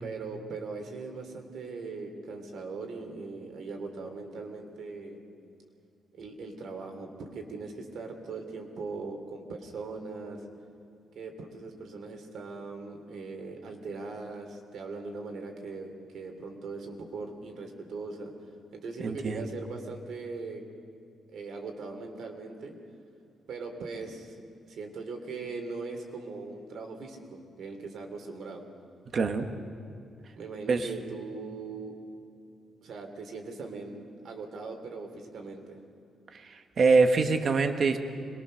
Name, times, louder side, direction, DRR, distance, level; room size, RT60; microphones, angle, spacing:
voice 1, 0.0-5.2 6.1-10.4 11.1-18.3 18.7-20.6 21.3-22.7 23.5-28.6 30.4-31.9 32.8-35.8, right 4 dB, 65° right, 4 dB, 3.2 m, -40 dB
voice 2, 19.0-19.5 29.1-29.5 30.7-30.9 36.3-38.0, right 4 dB, 40° right, 6 dB, 1.5 m, -24 dB
26.5 x 21.5 x 6.5 m, 2.6 s
wide cardioid pair, 165°, 0 cm